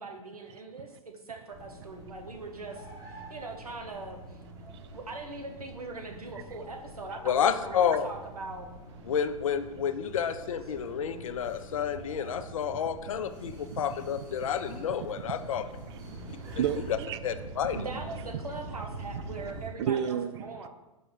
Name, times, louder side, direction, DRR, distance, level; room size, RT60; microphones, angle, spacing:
voice 1, 0.0-4.4 4.9-8.7 17.7-20.7, right 3 dB, 90° right, 1.0 m, -41 dB
sound 1, 1.5-19.7, right 2 dB, 20° right, 1.3 m, -45 dB
voice 2, 7.2-8.1 9.1-15.6 17.2-17.8, left 8 dB, 65° left, 0.5 m, -30 dB
voice 3, 13.5-13.8 16.2-17.2 19.8-20.3, right 9 dB, 50° right, 0.4 m, -31 dB
4.9 x 3.8 x 5.8 m
figure-of-eight pair, 110°, 19 cm